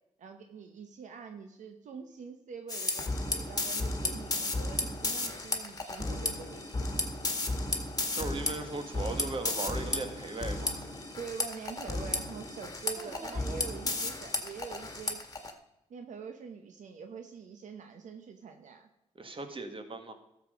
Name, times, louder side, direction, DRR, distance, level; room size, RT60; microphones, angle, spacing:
voice 1, 0.2-7.1 11.1-15.2 15.9-18.9, right 6 dB, 80° right, 6 dB, 1.0 m, -45 dB
sound 1, 2.7-15.5, left 2 dB, 30° left, 1.8 m, -34 dB
voice 2, 8.1-10.9 13.0-13.6 19.2-20.1, right 3 dB, 45° right, 7 dB, 1.8 m, -38 dB
13.0 x 7.3 x 5.1 m, 0.88 s
cardioid pair, 60°, 13 cm